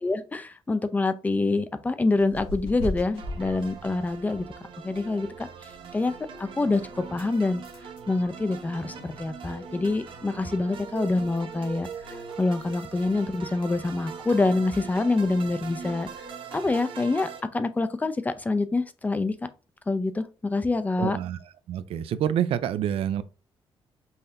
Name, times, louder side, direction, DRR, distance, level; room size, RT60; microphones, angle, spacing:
voice 1, 0.0-4.5 4.8-6.8 7.1-7.6 8.1-16.2 16.5-19.3 19.9-21.2, left 3 dB, 15° left, 0.4 m, -26 dB
sound 1, 2.2-16.3, left 1 dB, 85° left, 2.4 m, -44 dB
sound 2, 3.2-17.4, right 6 dB, 60° right, 0.8 m, -41 dB
voice 2, 21.0-21.4 21.7-23.2, right 10 dB, 80° right, 0.4 m, -27 dB
5.6 x 2.7 x 3.3 m
cardioid pair, 150°, 10 cm